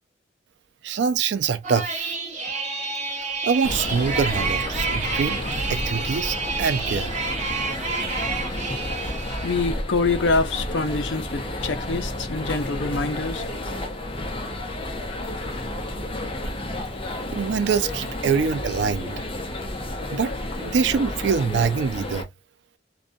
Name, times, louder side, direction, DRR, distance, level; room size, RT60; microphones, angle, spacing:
voice 1, 0.8-2.2 3.4-5.4 5.7-7.1 17.3-19.1 20.1-22.3, right 6 dB, 70° right, 0.4 m, -24 dB
sound 1, 1.6-9.7, right 4 dB, 40° right, 0.8 m, -29 dB
sound 2, 3.6-22.2, left 1 dB, 30° left, 0.6 m, -31 dB
voice 2, 9.4-13.4, left 3 dB, 70° left, 0.6 m, -25 dB
2.4 x 2.1 x 2.5 m
head